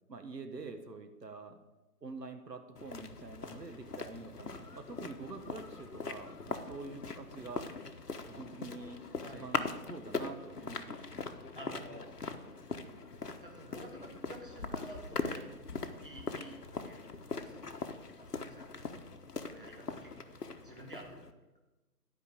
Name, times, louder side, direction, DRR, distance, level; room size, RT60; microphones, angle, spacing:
voice 1, 0.1-1.6 2.0-7.7 8.3-9.0 9.3-11.3, right 3 dB, 85° right, 7 dB, 1.4 m, -46 dB
sound 1, 2.8-21.3, left 4 dB, 70° left, 1.2 m, -41 dB
voice 2, 11.6-12.2 13.4-15.4 16.0-16.6 16.8-17.1 17.3-17.7 18.2-19.0 19.5-20.3 20.6-21.3, right 1 dB, 35° right, 0 dB, 1.9 m, -50 dB
11.5 x 5.4 x 8.4 m, 1.1 s
figure-of-eight pair, 180°, 48 cm